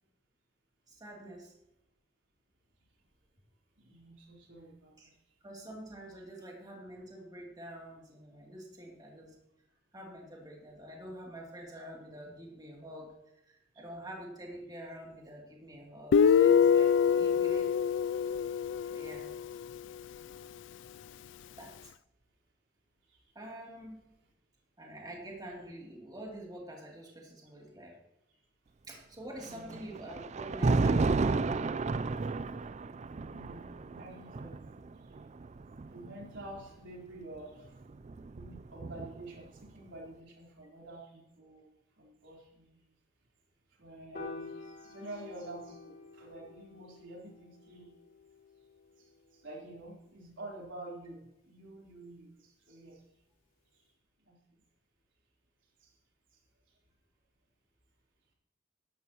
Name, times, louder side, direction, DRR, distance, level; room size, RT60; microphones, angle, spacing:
voice 1, 0.9-1.5 5.0-5.1 5.4-9.4 9.9-13.2 13.4-17.7 18.9-19.3 21.6-21.8 23.3-24.1 24.8-28.0 28.9-31.1 31.9-32.7, right 1 dB, 20° right, -2 dB, 2.9 m, -46 dB
voice 2, 3.8-5.1 13.7-13.9 23.1-23.2 29.4-29.8 33.2-35.1 35.7-37.8 38.3-41.7 42.0-42.8 43.7-47.9 49.0-53.0 53.7-53.8 54.2-54.6 55.8-55.9 56.3-56.4 56.7-56.8, right 2 dB, 90° right, -3 dB, 3.9 m, -49 dB
Guitar, 16.1-19.6, left 7 dB, 70° left, 0.3 m, -25 dB
Thunder, 29.4-36.6 37.6-39.4, right 3 dB, 40° right, 0.4 m, -32 dB
Piano, 44.1-50.5, left 3 dB, 50° left, 3.3 m, -49 dB
15.5 x 12.0 x 3.0 m, 0.83 s
head